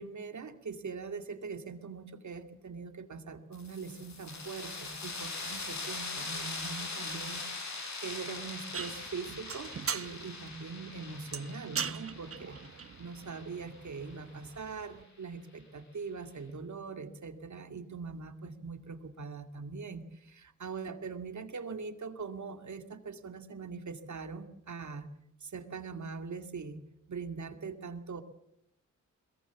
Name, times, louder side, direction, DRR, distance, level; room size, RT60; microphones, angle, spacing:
voice 1, 0.0-7.4 8.0-12.6 13.0-25.1 25.4-28.2, right 5 dB, 65° right, 8 dB, 2.4 m, -42 dB
sound 1, 3.5-14.9, left 3 dB, 60° left, 6.5 m, -42 dB
sound 2, 8.7-15.0, right 6 dB, 45° right, 0.9 m, -41 dB
22.0 x 22.0 x 7.2 m, 0.79 s
cardioid pair, 75°, 31 cm